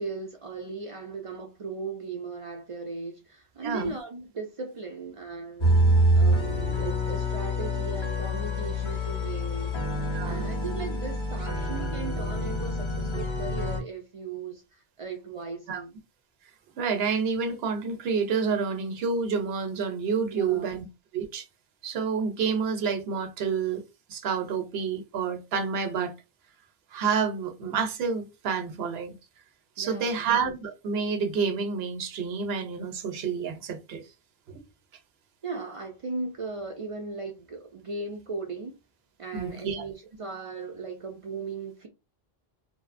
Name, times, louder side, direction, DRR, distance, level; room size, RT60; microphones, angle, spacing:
voice 1, 0.0-5.8 6.1-9.8 10.2-16.0 20.3-20.8 29.8-30.2 35.4-38.8 39.2-41.9, right 4 dB, 55° right, 0.3 m, -37 dB
voice 2, 3.6-3.9 10.1-10.4 15.7-15.8 16.8-20.9 21.1-21.4 21.8-23.8 24.1-26.1 26.9-29.2 29.8-34.0 34.5-34.6 39.3-39.9, right 5 dB, 75° right, 0.8 m, -29 dB
sound 1, 5.6-13.8, equal, 30° left, 0.8 m, -26 dB
2.6 x 2.0 x 2.4 m
omnidirectional pair, 1.0 m